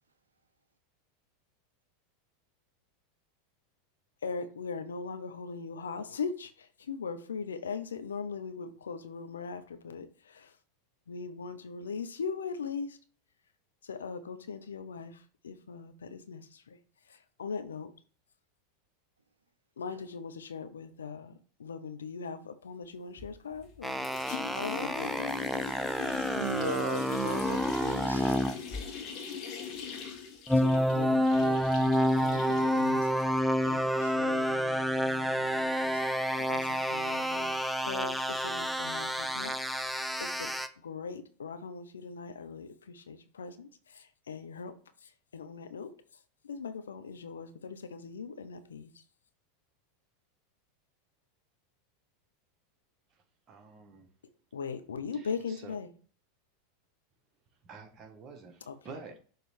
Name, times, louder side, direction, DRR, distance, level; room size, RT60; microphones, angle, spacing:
voice 1, 4.2-10.5 11.1-13.0 13.8-16.8 17.1-17.9 19.8-24.1 24.5-26.3 28.7-28.8 29.2-29.3 30.5-33.1 33.6-37.5 37.9-39.9 40.2-40.5 40.8-44.7 45.0-45.9 46.4-49.0 54.5-55.9 58.7-58.8, left 5 dB, 80° left, 0.7 m, -40 dB
sound 1, 23.2-23.8 24.0-33.4, left 7 dB, 45° left, 1.6 m, -41 dB
sound 2, 23.8-28.6 30.5-40.7, equal, ahead, 0.6 m, -29 dB
voice 2, 26.3-28.5, right 4 dB, 90° right, 0.6 m, -37 dB
voice 3, 53.5-54.1 55.1-55.7 57.6-59.2, right 4 dB, 35° right, 1.6 m, -49 dB
6.6 x 3.3 x 4.3 m
hypercardioid pair, 90°, 0 cm